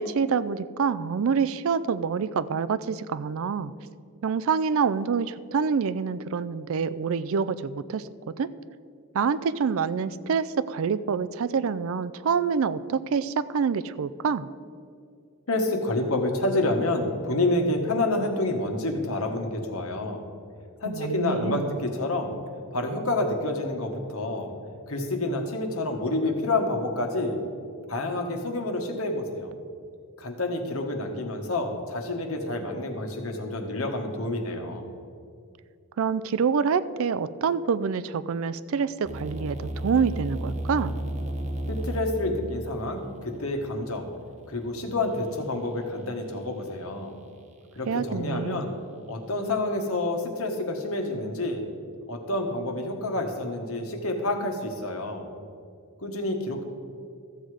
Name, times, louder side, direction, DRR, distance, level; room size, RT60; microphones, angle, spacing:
voice 1, 0.0-3.7 4.2-8.1 8.4-8.5 9.1-14.5 20.8-21.7 36.0-41.0 47.9-48.7, right 6 dB, 65° right, 15 dB, 0.4 m, -26 dB
voice 2, 15.5-20.2 20.8-22.3 22.7-24.5 24.9-27.4 27.9-29.5 30.2-34.8 41.7-44.1 44.5-47.2 47.7-48.8 49.1-51.6 52.1-55.3 56.0-56.6, left 2 dB, 70° left, 4 dB, 1.4 m, -28 dB
sound 1, 39.0-45.0, right 1 dB, 30° right, 0.8 m, -34 dB
13.5 x 7.9 x 4.9 m, 2.4 s
head